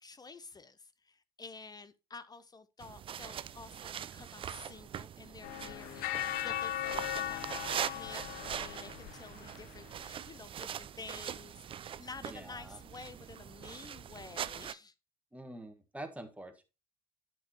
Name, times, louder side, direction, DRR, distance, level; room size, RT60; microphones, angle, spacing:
voice 1, 0.0-14.9, left 4 dB, 20° left, 0.7 m, -50 dB
sound 1, 2.8-14.7, right 9 dB, 30° right, 0.4 m, -42 dB
sound 2, 5.4-9.7, left 13 dB, 55° left, 0.5 m, -38 dB
voice 2, 12.2-12.8 15.3-16.6, right 1 dB, 5° right, 1.8 m, -46 dB
10.5 x 6.1 x 3.1 m
figure-of-eight pair, 60°, 18 cm